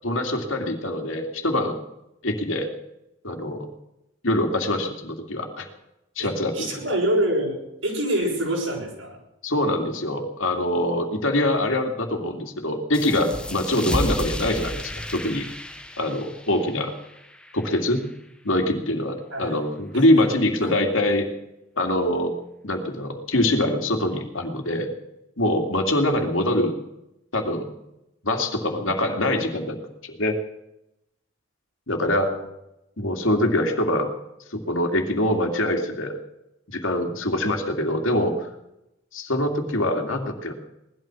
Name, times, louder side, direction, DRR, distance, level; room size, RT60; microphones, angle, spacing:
voice 1, 0.0-1.8 2.2-2.7 3.2-3.7 4.2-5.7 6.2-6.9 9.4-15.5 16.0-16.9 17.5-18.1 18.4-21.3 21.8-22.3 22.6-24.9 25.4-26.8 27.3-27.7 28.2-29.8 30.0-30.4 31.9-32.3 33.0-34.1 34.5-36.1 36.7-38.5 39.1-40.5, left 1 dB, 80° left, 4 dB, 2.6 m, -24 dB
voice 2, 6.2-9.2 19.3-19.5 19.9-20.7 32.0-32.4, right 1 dB, 80° right, -1 dB, 6.1 m, -27 dB
sound 1, 12.9-18.2, left 1 dB, 5° left, 0.9 m, -33 dB
19.0 x 12.5 x 6.2 m, 0.88 s
head